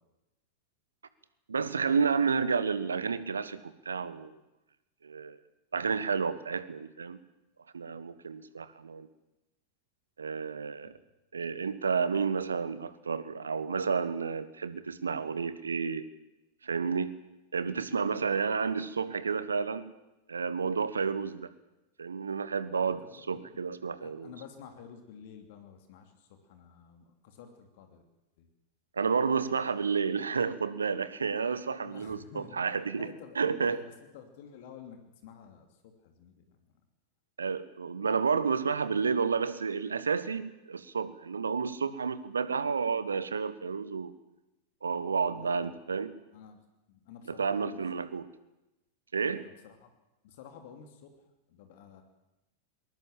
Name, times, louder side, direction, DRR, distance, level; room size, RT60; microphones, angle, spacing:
voice 1, 1.5-4.4 5.0-5.4 5.7-7.2 7.7-9.1 10.2-10.9 11.3-16.0 16.6-17.1 17.5-19.9 20.3-21.5 22.0-24.3 29.0-33.8 37.4-44.1 44.8-46.2 47.2-48.3 49.1-49.5, right 5 dB, 75° right, 15 dB, 1.2 m, -31 dB
voice 2, 22.7-23.6 24.0-28.0 28.4-28.5 31.8-32.6 32.9-36.6 45.3-45.8 46.3-46.6 46.9-47.8 49.3-49.9 50.2-51.1 51.5-52.0, left 7 dB, 50° left, 6 dB, 2.8 m, -51 dB
21.5 x 20.0 x 7.5 m, 0.97 s
figure-of-eight pair, 90°, 0 cm